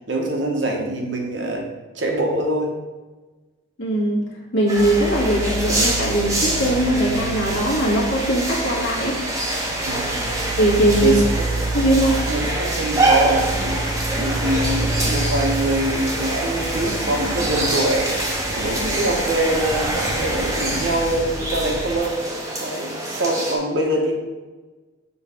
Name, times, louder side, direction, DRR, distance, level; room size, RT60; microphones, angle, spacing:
voice 1, 0.1-1.6 1.9-2.7 9.8-10.1 11.0-11.7 12.3-18.1 18.6-22.2 22.6-24.1, right 1 dB, 70° right, 0 dB, 1.2 m, -24 dB
voice 2, 3.8-4.2 4.5-9.2 10.6-11.2 11.7-12.3, right 1 dB, 70° left, -3 dB, 1.6 m, -20 dB
sound 1, 4.7-23.6, right 1 dB, 15° right, 1.0 m, -25 dB
sound 2, 4.8-22.0, right 2 dB, 50° right, 1.3 m, -30 dB
sound 3, 15.9-21.7, equal, 55° left, 1.1 m, -38 dB
6.9 x 3.3 x 4.9 m, 1.2 s
head